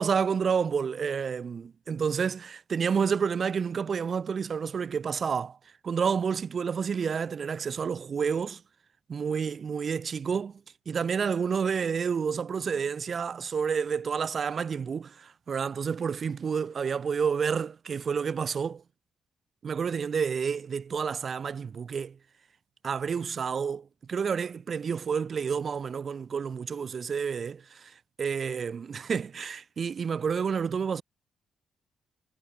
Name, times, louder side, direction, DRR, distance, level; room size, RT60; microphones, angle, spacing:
voice 1, 0.0-5.6 5.8-8.6 9.1-18.8 19.6-22.2 22.8-31.0, right 6 dB, 45° right, 0.4 m, -29 dB
cardioid pair, 115°, 0 cm